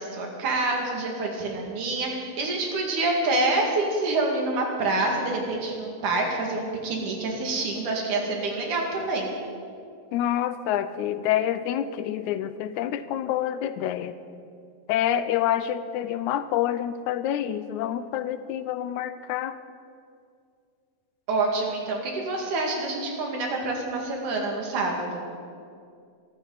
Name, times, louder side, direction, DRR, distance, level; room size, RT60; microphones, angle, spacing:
voice 1, 0.0-9.3 21.3-25.3, right 2 dB, 90° right, 0 dB, 3.6 m, -27 dB
voice 2, 10.1-14.2 14.9-19.6, left 11 dB, 85° left, 12 dB, 2.0 m, -27 dB
23.5 x 13.0 x 4.0 m, 2.3 s
omnidirectional pair, 3.4 m